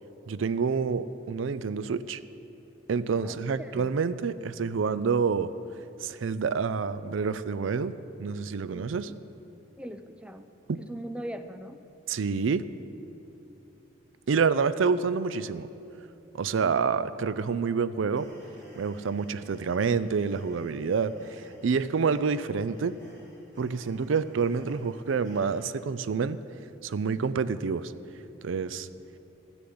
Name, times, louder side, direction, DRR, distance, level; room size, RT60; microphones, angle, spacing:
voice 1, 0.3-2.2 2.9-5.5 6.0-7.9 8.2-9.1 10.7-10.8 12.1-12.6 14.3-15.7 16.3-18.3 18.8-21.1 21.6-23.0 23.6-26.4 26.8-27.9 28.4-28.9, right 5 dB, 90° right, 15 dB, 0.4 m, -27 dB
voice 2, 3.2-4.0 8.7-9.2 9.8-10.5 10.8-11.8, right 1 dB, 5° right, 9 dB, 0.4 m, -40 dB
sound 1, 18.2-25.8, equal, 65° right, 4.0 m, -52 dB
14.0 x 6.9 x 9.5 m, 2.9 s
head